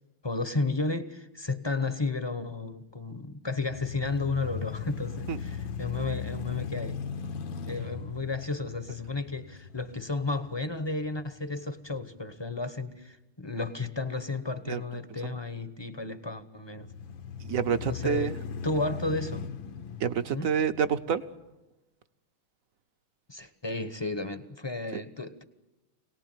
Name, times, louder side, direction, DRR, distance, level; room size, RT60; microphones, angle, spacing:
voice 1, 0.2-7.0 7.7-16.9 17.7-18.3 18.6-19.5 20.3-20.5 23.3-25.4, left 3 dB, 20° left, 0.8 m, -33 dB
sound 1, 3.5-11.7 12.2-12.3 16.8-21.3, left 6 dB, 70° left, 1.8 m, -38 dB
voice 2, 17.4-18.3 20.0-21.2 24.9-25.0, right 7 dB, 50° right, 1.1 m, -28 dB
27.0 x 19.0 x 9.1 m
omnidirectional pair, 2.3 m